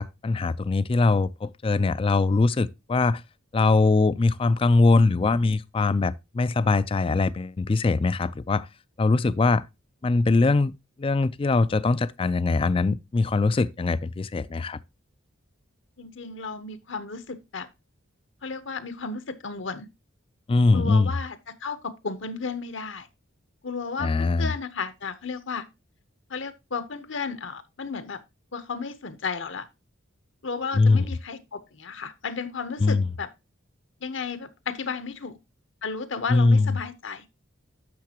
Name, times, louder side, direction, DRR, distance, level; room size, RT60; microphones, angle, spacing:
voice 1, 0.0-3.2 3.5-8.7 9.0-9.6 10.0-10.7 11.0-14.8 20.5-21.1 24.0-24.5 30.7-31.1 32.8-33.1 36.3-36.8, left 3 dB, 25° left, 0.3 m, -22 dB
voice 2, 16.0-17.7 18.4-19.9 20.7-21.4 21.6-23.1 23.6-25.6 26.3-28.2 28.5-29.7 30.4-33.3 34.0-35.4 35.8-37.3, left 5 dB, 65° left, 0.9 m, -33 dB
10.5 x 6.7 x 2.8 m
head